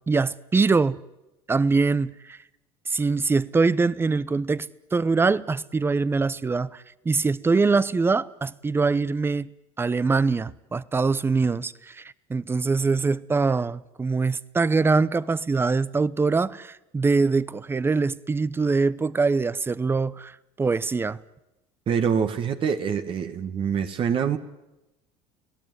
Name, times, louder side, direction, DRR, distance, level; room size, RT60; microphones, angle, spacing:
voice 1, 0.1-1.0 1.5-2.4 2.9-9.5 9.8-21.2, right 4 dB, 15° right, 0.9 m, -23 dB
voice 2, 21.9-24.4, right 7 dB, 45° right, 1.7 m, -25 dB
29.5 x 18.0 x 9.6 m
supercardioid pair, 105°, 13 cm